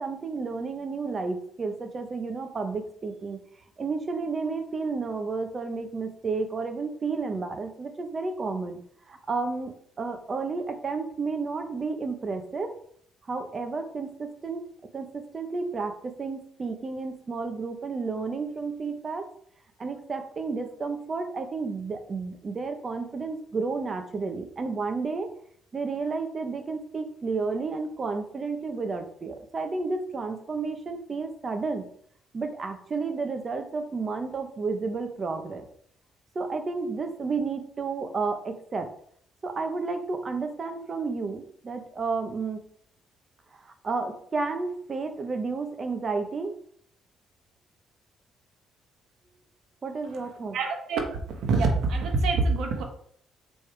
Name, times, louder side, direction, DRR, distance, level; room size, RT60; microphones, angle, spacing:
voice 1, 0.0-3.4 3.8-8.8 9.1-9.7 10.0-12.7 13.2-14.7 14.9-19.3 19.8-25.3 25.7-31.8 32.3-35.7 36.3-38.9 39.4-42.6 43.5-46.5 49.8-50.6, right 4 dB, 35° right, 6 dB, 1.2 m, -31 dB
voice 2, 50.5-51.1 51.4-52.8, right 3 dB, 75° right, 3 dB, 1.5 m, -25 dB
6.8 x 5.0 x 3.5 m, 0.62 s
cardioid pair, 85°, 0 cm